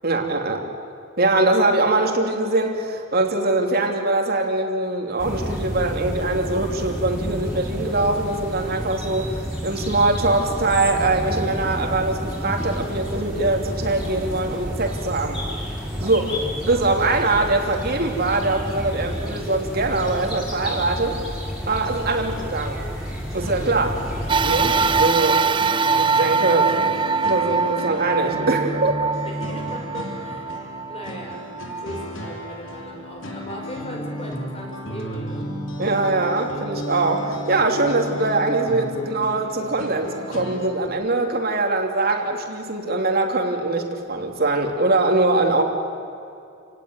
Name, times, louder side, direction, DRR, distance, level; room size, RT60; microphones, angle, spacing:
voice 1, 0.0-0.7 1.2-15.4 16.0-16.4 16.6-21.2 21.7-22.8 23.3-24.0 24.4-25.4 25.9-26.7 27.2-29.1 35.8-45.6, right 2 dB, 50° right, 3 dB, 3.0 m, -22 dB
sound 1, 5.2-25.0, equal, 5° right, 6.2 m, -30 dB
sound 2, 23.4-40.9, equal, 75° left, 3.4 m, -34 dB
sound 3, 24.3-32.9 33.5-33.6 34.7-34.8, right 5 dB, 25° right, 0.5 m, -23 dB
voice 2, 29.2-31.4 31.8-35.5, equal, 30° left, 1 dB, 5.3 m, -38 dB
28.5 x 18.5 x 9.7 m, 2.6 s
head